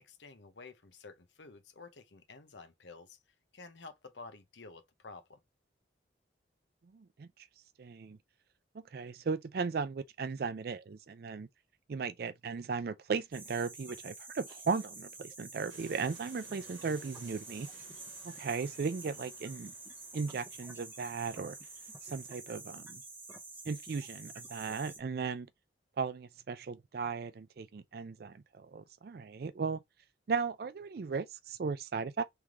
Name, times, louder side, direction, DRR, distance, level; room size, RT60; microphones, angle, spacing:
voice 1, 0.0-3.2 3.5-5.4, left 3 dB, 75° left, 0.9 m, -51 dB
voice 2, 6.9-7.5 7.8-8.2 8.9-11.5 11.9-17.7 18.2-19.7 20.1-21.6 22.0-23.0 23.7-25.5 26.0-29.8 30.3-32.2, right 5 dB, 55° right, 0.4 m, -36 dB
sound 1, 13.3-25.0, right 3 dB, 10° right, 0.7 m, -49 dB
sound 2, 15.7-22.3, right 5 dB, 90° right, 1.0 m, -58 dB
3.5 x 3.2 x 3.6 m
head